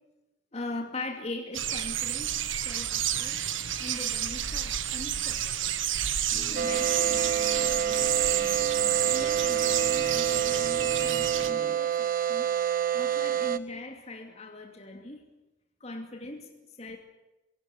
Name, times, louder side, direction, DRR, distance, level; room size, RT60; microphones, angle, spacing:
voice 1, 0.5-3.5 3.8-5.8 6.5-8.4 9.0-12.5 12.9-15.3 15.8-17.0, left 2 dB, 35° left, 4 dB, 2.5 m, -41 dB
sound 1, 1.5-11.5, right 11 dB, 80° right, 1.5 m, -30 dB
sound 2, 6.3-11.8, left 1 dB, 10° right, 2.5 m, -43 dB
sound 3, 6.6-13.6, right 9 dB, 45° right, 0.9 m, -28 dB
25.0 x 17.0 x 9.8 m, 1.0 s
head